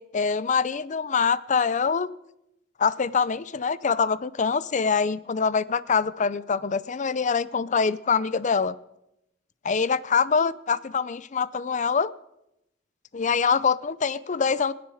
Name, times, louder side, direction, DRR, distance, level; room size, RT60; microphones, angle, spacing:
voice 1, 0.0-2.1 2.8-8.7 9.6-12.1 13.1-14.7, left 5 dB, 40° left, 17 dB, 0.6 m, -24 dB
26.0 x 10.5 x 4.9 m, 0.84 s
head